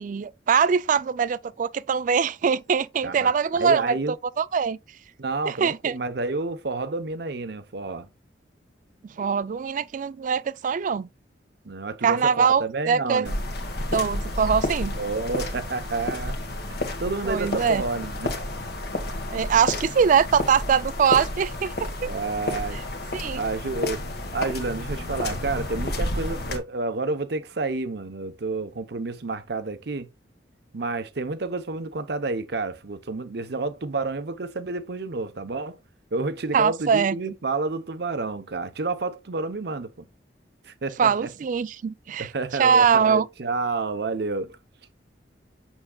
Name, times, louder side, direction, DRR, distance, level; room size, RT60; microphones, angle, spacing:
voice 1, 0.0-4.0 4.4-4.8 5.5-5.9 9.2-11.1 12.0-13.3 13.9-14.9 17.3-17.8 19.3-22.1 23.1-23.4 36.5-37.1 41.0-42.3 42.6-43.2, right 6 dB, 45° right, 0.3 m, -22 dB
voice 2, 3.0-4.2 5.2-8.1 11.6-13.4 14.9-16.4 16.7-18.3 22.0-22.8 23.3-24.1 24.3-30.1 30.7-35.8 36.1-40.1 40.6-41.3 42.2-44.6, right 3 dB, 65° right, 0.7 m, -30 dB
sound 1, 13.2-26.6, left 1 dB, 60° left, 1.3 m, -31 dB
7.2 x 6.3 x 2.3 m
head